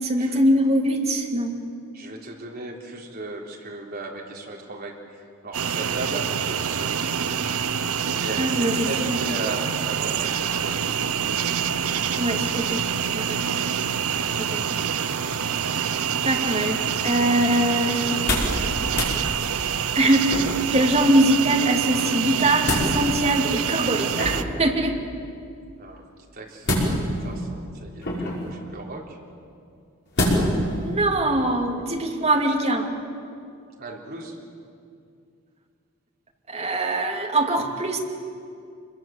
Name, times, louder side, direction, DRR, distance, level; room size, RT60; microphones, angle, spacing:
voice 1, 0.0-1.5 8.4-9.2 12.2-13.4 14.4-14.6 16.2-18.2 19.9-20.3 20.7-25.1 30.8-32.9 36.5-38.0, right 1 dB, 30° right, 1 dB, 2.6 m, -22 dB
voice 2, 1.9-7.0 8.0-10.8 25.8-26.0 26.3-26.9 27.2-29.2 33.8-34.4, right 2 dB, 45° right, -1 dB, 3.9 m, -36 dB
sound 1, 5.5-24.4, right 7 dB, 80° right, 0.8 m, -26 dB
sound 2, 18.1-18.6 18.9-19.2 20.3-20.7 22.2-22.9 24.1-24.6 26.6-27.3 28.0-28.5 30.1-30.6 31.1-31.2, left 1 dB, 50° left, 6.0 m, -25 dB
27.5 x 22.0 x 7.9 m, 2.4 s
head